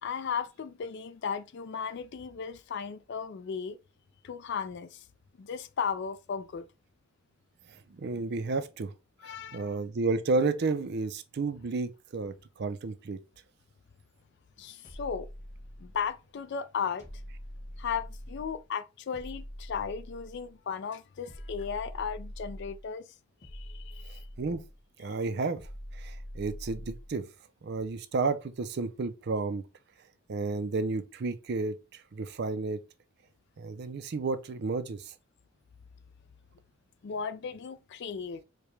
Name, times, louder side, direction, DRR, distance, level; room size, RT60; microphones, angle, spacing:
voice 1, 0.0-3.8 4.2-5.0 5.4-6.6 9.2-9.7 14.6-15.3 15.8-17.0 17.8-23.0 23.5-24.2 37.0-38.4, left 6 dB, 50° left, 0.3 m, -35 dB
voice 2, 7.7-8.9 9.2-13.2 24.4-24.6 25.0-25.6 25.9-27.3 27.6-29.6 30.3-32.8 33.6-35.1, right 3 dB, 45° right, 0.4 m, -32 dB
sound 1, 14.8-16.2 17.0-18.6 19.1-20.5 21.3-22.9 23.4-24.8 25.6-27.2, equal, 35° left, 1.1 m, -44 dB
4.8 x 2.2 x 3.1 m
head